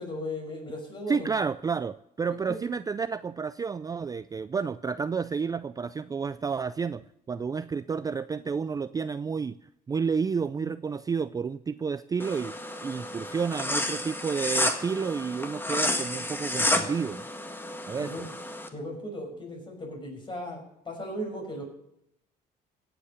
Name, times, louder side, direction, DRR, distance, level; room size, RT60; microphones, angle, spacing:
voice 1, 0.0-1.3 2.5-2.6 10.6-10.7 18.0-18.3 18.7-21.6, left 1 dB, 30° left, 2 dB, 5.7 m, -37 dB
voice 2, 1.1-9.6 9.9-12.5 12.8-17.2 17.9-18.1, right 5 dB, 20° right, 14 dB, 0.4 m, -30 dB
sound 1, 12.2-18.7, left 1 dB, 10° left, 1.7 m, -31 dB
16.5 x 8.1 x 6.6 m, 0.80 s
cardioid pair, 110°, 17 cm